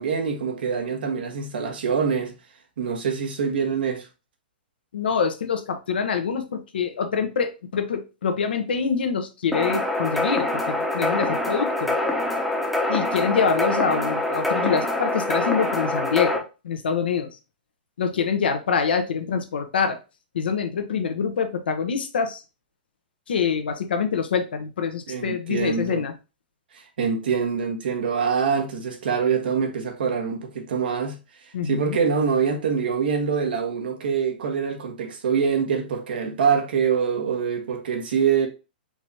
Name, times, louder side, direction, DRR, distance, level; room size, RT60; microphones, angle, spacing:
voice 1, 0.0-2.3 2.8-4.1 25.1-26.0 26.7-31.2 31.6-38.5, right 6 dB, 75° right, 1.3 m, -24 dB
voice 2, 4.9-12.0 12.9-17.3 18.0-20.0 20.3-22.4 23.3-26.1 31.5-32.0, left 6 dB, 80° left, 0.9 m, -25 dB
sound 1, 9.5-16.4, left 1 dB, ahead, 0.8 m, -25 dB
4.7 x 3.4 x 2.8 m
hypercardioid pair, 135°, 5 cm